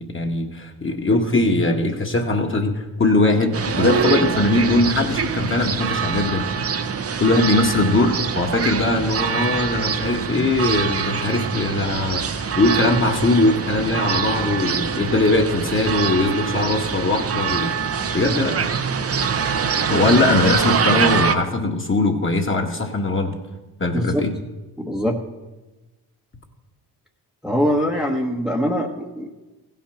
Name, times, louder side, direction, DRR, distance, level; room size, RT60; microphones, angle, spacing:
voice 1, 0.1-6.6 7.2-17.7 18.1-18.6 19.9-23.3 23.8-24.3, left 2 dB, 30° left, 2 dB, 1.8 m, -20 dB
sound 1, 3.5-21.3, right 6 dB, 35° right, 0.8 m, -24 dB
voice 2, 24.8-25.2 27.4-29.3, equal, ahead, 0 dB, 1.2 m, -22 dB
15.5 x 5.9 x 5.8 m, 1.1 s
supercardioid pair, 60°, 42 cm